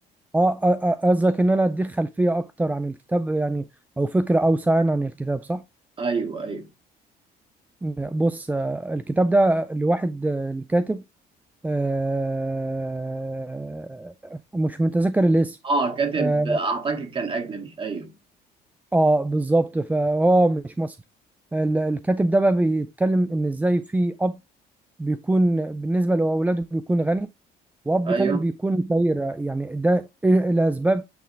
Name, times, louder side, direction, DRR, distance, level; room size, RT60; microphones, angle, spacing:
voice 1, 0.3-3.7 4.0-5.6 7.8-11.0 11.6-15.6 16.2-16.6 18.9-21.0 21.5-24.4 25.0-27.3 27.9-31.0, right 2 dB, 10° right, 0.4 m, -22 dB
voice 2, 6.0-6.7 15.6-18.1 28.1-28.4, right 4 dB, 30° right, 2.1 m, -26 dB
8.5 x 3.7 x 3.3 m
cardioid pair, 110°, 17 cm